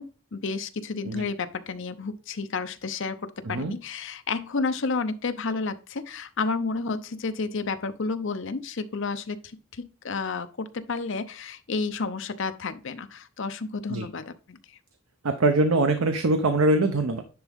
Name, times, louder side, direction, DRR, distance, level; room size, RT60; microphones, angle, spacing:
voice 1, 0.0-14.6, left 4 dB, 65° left, 10 dB, 0.7 m, -31 dB
voice 2, 15.2-17.2, right 2 dB, 85° right, 7 dB, 0.7 m, -23 dB
10.5 x 3.6 x 3.6 m, 0.35 s
head